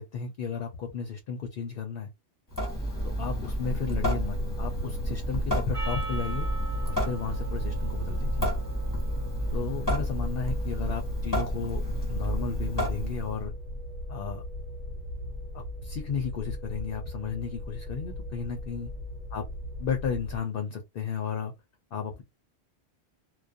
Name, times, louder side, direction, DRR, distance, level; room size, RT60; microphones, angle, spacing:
voice 1, 0.0-2.1 3.0-6.5 6.8-8.5 9.5-11.8 12.1-13.5 14.1-14.4 15.5-18.9 19.3-19.4 19.8-21.5 21.9-22.2, left 6 dB, 60° left, 0.7 m, -34 dB
Water tap faucet / Sink (filling or washing) / Drip, 2.5-13.4, equal, 20° left, 0.9 m, -30 dB
sound 1, 3.6-20.4, left 1 dB, 75° right, 1.0 m, -38 dB
Percussion, 5.7-10.3, right 3 dB, 35° right, 0.7 m, -42 dB
2.3 x 2.2 x 2.6 m
omnidirectional pair, 1.1 m